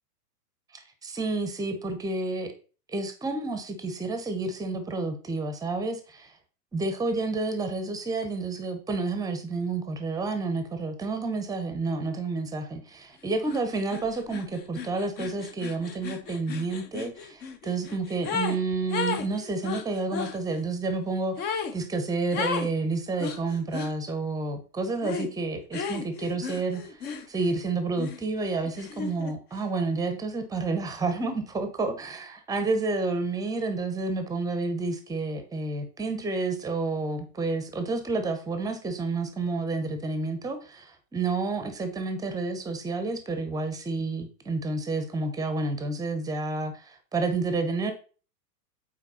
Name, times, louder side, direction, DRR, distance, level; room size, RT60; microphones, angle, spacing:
voice 1, 0.7-2.5 2.9-6.3 6.7-26.8 27.3-47.9, right 3 dB, 10° right, 8 dB, 0.9 m, -30 dB
sound 1, 13.5-13.6 13.9-18.6 18.9-20.4 21.4-21.8 22.3-22.7 23.2-23.9 25.0-25.3 25.7-27.6 28.0-29.3, left 6 dB, 20° left, 0.7 m, -34 dB
8.2 x 4.7 x 4.2 m, 0.37 s
hypercardioid pair, 140°, 48 cm